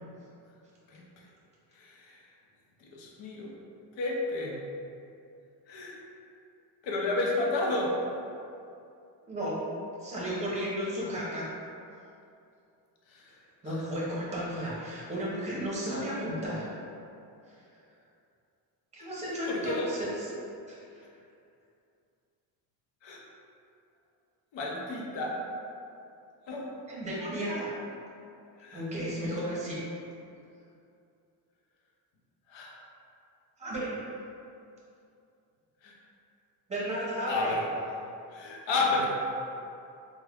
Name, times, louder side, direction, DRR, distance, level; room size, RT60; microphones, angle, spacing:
voice 1, 1.7-2.2 2.8-3.5 4.0-4.7 5.7-6.0 6.8-8.0 13.1-13.3 13.6-13.8 19.5-19.9 23.0-23.2 24.5-25.4 26.5-26.7 28.6-28.9 32.5-32.7 35.8-35.9 37.3-37.6 38.3-39.1, left 2 dB, 85° left, -2 dB, 0.7 m, -31 dB
voice 2, 9.2-9.6 10.0-11.4 13.6-16.6 18.9-20.3 20.7-20.8 26.9-27.7 28.7-29.8 33.6-33.9 36.7-37.5, equal, 15° right, -6 dB, 0.7 m, -33 dB
3.4 x 2.2 x 3.4 m, 2.6 s
cardioid pair, 160°, 44 cm